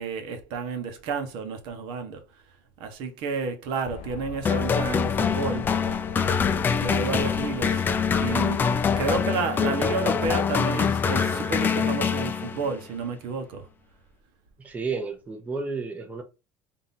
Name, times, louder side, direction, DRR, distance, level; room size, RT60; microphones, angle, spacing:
voice 1, 0.0-2.2 2.8-5.7 6.8-7.8 8.2-8.6 9.0-13.7, right 4 dB, 65° right, 1.2 m, -31 dB
sound 1, 3.8-9.3, left 6 dB, 75° left, 0.7 m, -39 dB
sound 2, 4.4-12.8, left 6 dB, 20° left, 0.4 m, -24 dB
voice 2, 14.6-16.2, right 4 dB, 15° right, 0.8 m, -32 dB
3.7 x 2.9 x 4.2 m
cardioid pair, 145°, 9 cm